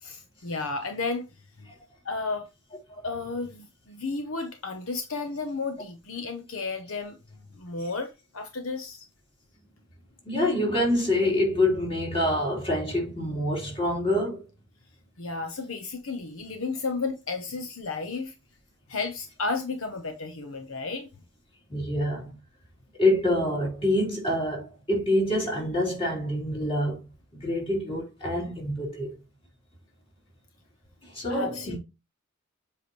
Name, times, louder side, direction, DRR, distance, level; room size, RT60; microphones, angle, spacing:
voice 1, 0.0-1.3 1.6-1.7 2.0-2.5 3.0-7.2 7.6-9.1 15.2-18.3 18.9-21.1 31.3-31.8, left 3 dB, 75° left, 0.9 m, -33 dB
voice 2, 10.3-14.4 21.7-22.3 23.0-27.0 27.4-29.1 31.1-31.8, left 1 dB, 25° left, 3.8 m, -26 dB
7.6 x 5.0 x 3.2 m
head